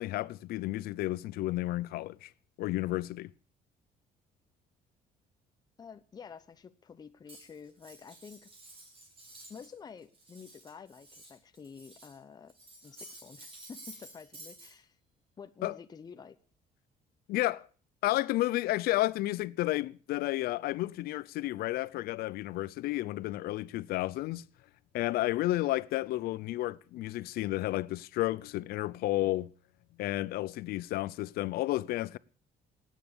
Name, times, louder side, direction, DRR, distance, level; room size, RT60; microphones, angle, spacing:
voice 1, 0.0-2.3 2.6-3.3 15.6-15.8 17.3-17.7 18.0-24.4 24.9-29.5 30.0-32.2, left 17 dB, 80° left, 0.6 m, -32 dB
voice 2, 5.8-8.5 9.5-12.5 12.8-15.0 15.4-16.4, left 6 dB, 25° left, 0.8 m, -49 dB
Cutlery silverware, 7.3-9.7 10.0-12.2 12.5-14.7, right 1 dB, 35° right, 7.1 m, -52 dB
18.5 x 9.4 x 6.9 m
cardioid pair, 135°, 16 cm